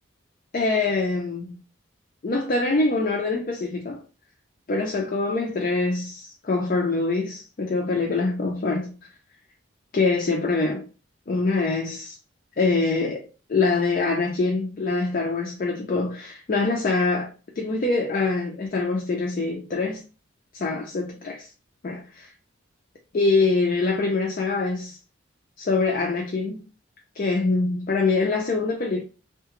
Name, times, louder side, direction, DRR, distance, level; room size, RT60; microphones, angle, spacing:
voice 1, 0.5-1.6 2.2-4.0 4.7-9.0 9.9-10.9 11.3-12.2 12.6-20.0 20.5-21.5 21.8-22.3 23.1-25.0 25.6-26.6 27.1-29.0, left 3 dB, 40° left, 0.4 m, -24 dB
2.8 x 2.2 x 2.9 m
head